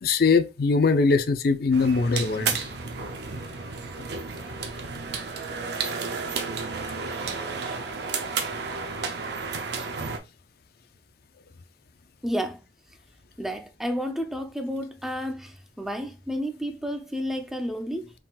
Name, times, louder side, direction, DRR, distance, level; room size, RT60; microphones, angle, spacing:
voice 1, 0.0-2.6, left 4 dB, 55° left, 0.5 m, -21 dB
sound 1, 1.7-10.2, right 5 dB, 65° right, 0.6 m, -32 dB
voice 2, 12.2-12.6 13.4-18.1, equal, ahead, 0.4 m, -31 dB
4.1 x 3.8 x 2.3 m
head